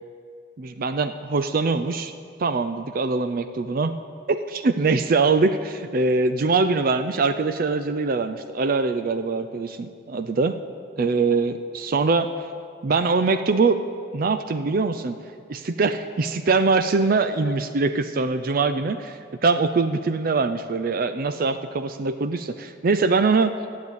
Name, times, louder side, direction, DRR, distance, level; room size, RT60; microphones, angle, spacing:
voice 1, 0.6-2.1 2.4-3.9 4.3-10.6 11.0-12.3 12.8-13.8 14.1-15.2 15.5-23.5, right 4 dB, 50° right, 9 dB, 0.5 m, -23 dB
13.5 x 8.4 x 8.2 m, 2.3 s
head